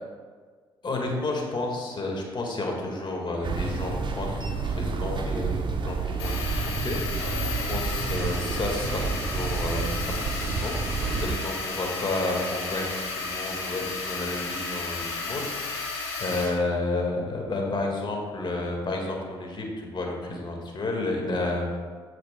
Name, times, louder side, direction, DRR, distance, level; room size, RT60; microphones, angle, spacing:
voice 1, 0.8-10.1 10.4-21.8, left 2 dB, 35° left, 0 dB, 1.8 m, -31 dB
sound 1, 3.4-11.4, right 4 dB, 35° right, 0.8 m, -30 dB
sound 2, 6.2-16.5, left 4 dB, 85° left, 1.2 m, -33 dB
14.5 x 5.2 x 2.3 m, 1.5 s
figure-of-eight pair, 45°, 13 cm